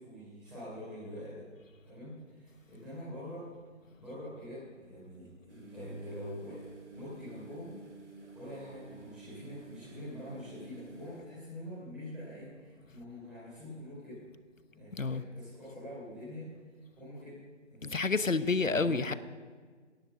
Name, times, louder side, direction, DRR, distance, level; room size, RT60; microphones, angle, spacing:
voice 1, 0.0-1.4 1.8-3.5 4.0-7.8 8.3-14.2 14.7-16.5 17.0-17.4 17.7-19.2, equal, ahead, 3.7 m, -45 dB
sound 1, 5.5-11.2, right 2 dB, 65° right, 3.3 m, -51 dB
voice 2, 14.9-15.2 17.8-19.1, left 4 dB, 80° left, 1.0 m, -29 dB
18.0 x 10.5 x 7.5 m
figure-of-eight pair, 160°, 38 cm